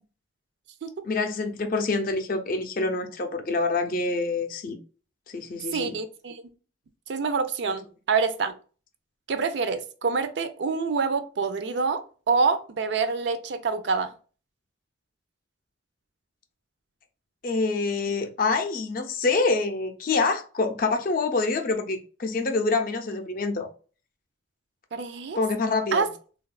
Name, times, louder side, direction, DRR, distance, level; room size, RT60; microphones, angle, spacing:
voice 1, 1.0-4.8 5.3-6.0 17.4-23.7 25.4-26.1, left 3 dB, 45° left, 0.4 m, -26 dB
voice 2, 5.7-6.4 7.1-8.5 9.3-14.1 24.9-25.4 25.9-26.1, right 4 dB, 65° right, 0.4 m, -26 dB
3.4 x 2.3 x 2.3 m
head